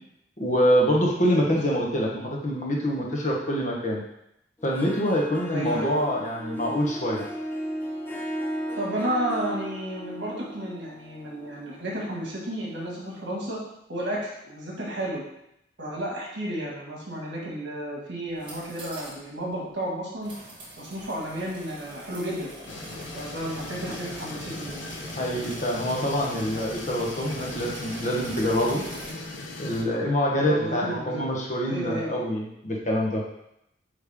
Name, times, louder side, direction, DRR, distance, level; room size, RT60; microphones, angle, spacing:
voice 1, 0.4-4.0 4.6-7.2 25.2-28.8 29.6-33.2, equal, 40° left, -2 dB, 1.0 m, -25 dB
Harp, 4.6-13.2, equal, 10° left, 0.5 m, -36 dB
voice 2, 5.5-6.0 8.8-13.6 13.9-15.2 15.8-20.3 20.8-22.5 23.1-24.9 30.4-31.3 31.7-32.2, right 1 dB, 65° right, -4 dB, 1.9 m, -32 dB
sound 1, 18.3-19.2 19.5-19.6 20.2-29.1, right 1 dB, 30° right, 1.4 m, -42 dB
sound 2, 22.7-29.8, left 2 dB, 80° left, 0.8 m, -39 dB
8.3 x 3.2 x 3.6 m, 0.80 s
head